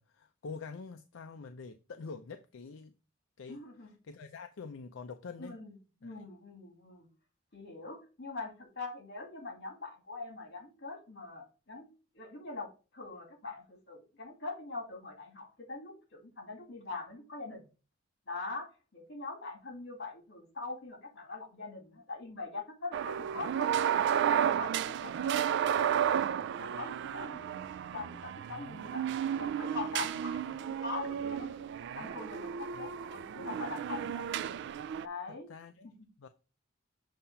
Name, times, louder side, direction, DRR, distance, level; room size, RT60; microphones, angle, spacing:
voice 1, 0.1-2.9 3.4-3.6 4.0-5.6 6.0-6.2 29.0-29.2 32.7-32.9 35.3-36.3, left 4 dB, 80° left, 0.5 m, -46 dB
voice 2, 3.5-3.9 5.4-5.7 6.0-7.1 7.5-11.9 12.1-17.7 18.3-23.9 24.4-25.5 25.9-27.7 27.9-29.1 29.4-31.6 31.9-34.3 35.0-35.5, left 3 dB, 60° left, 2.5 m, -43 dB
sound 1, 22.9-35.1, right 9 dB, 60° right, 0.3 m, -33 dB
7.2 x 2.9 x 5.5 m
head